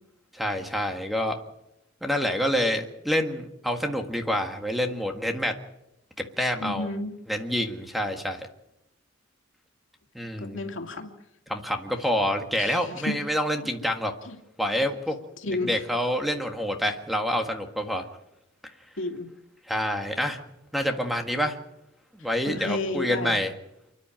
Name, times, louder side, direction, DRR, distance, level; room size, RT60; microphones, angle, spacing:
voice 1, 0.3-1.4 2.0-5.5 6.2-6.9 7.3-8.5 10.2-10.6 11.5-14.1 14.6-15.2 15.6-18.0 19.7-20.4 20.7-21.6 22.1-23.5, equal, ahead, 4 dB, 1.7 m, -27 dB
voice 2, 6.6-7.2 10.4-11.2 12.6-13.1 14.2-14.4 15.4-15.8 19.0-19.3 22.2-23.4, left 2 dB, 70° left, 4 dB, 2.6 m, -32 dB
29.5 x 10.5 x 9.0 m, 0.86 s
head